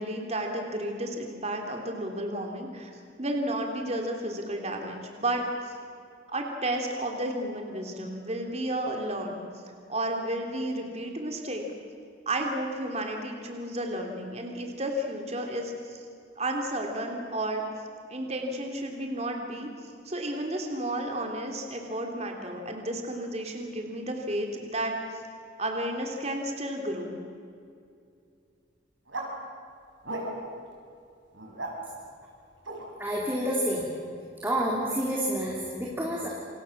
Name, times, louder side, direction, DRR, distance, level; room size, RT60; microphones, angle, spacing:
voice 1, 0.0-2.9 3.2-5.7 6.3-9.4 9.9-11.6 12.2-16.0 16.4-17.6 18.1-25.0 25.6-27.2, right 1 dB, 35° right, 2 dB, 3.2 m, -32 dB
sound 1, 29.1-29.3 30.0-30.6 31.3-31.7 32.7-32.8, right 2 dB, 75° right, 6.5 m, -35 dB
voice 2, 33.0-33.9 34.4-36.3, equal, 10° right, -3 dB, 3.6 m, -28 dB
28.5 x 27.5 x 7.3 m, 2.5 s
head